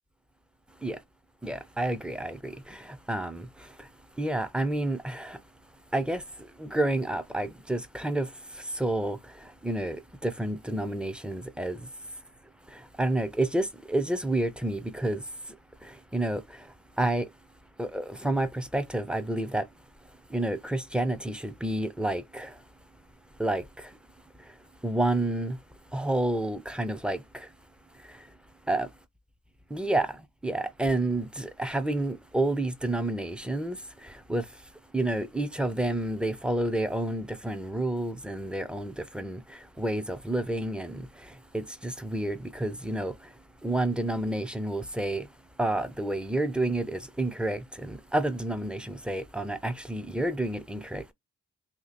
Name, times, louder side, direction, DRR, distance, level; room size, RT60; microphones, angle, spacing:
voice 1, 1.4-2.8 3.1-3.5 4.2-5.4 5.9-6.2 6.6-8.3 8.8-9.2 9.6-10.0 10.2-11.8 13.0-15.2 16.1-16.4 17.0-17.3 17.8-19.7 20.3-22.5 23.4-23.6 24.8-25.6 25.9-27.2 28.7-28.9 29.7-30.1 30.4-33.8 34.3-34.4 34.9-39.4 39.8-41.0 41.5-43.1 43.6-45.3 45.6-51.1, right 1 dB, 5° right, 0.6 m, -29 dB
2.9 x 2.7 x 4.1 m
cardioid pair, 70°, 33 cm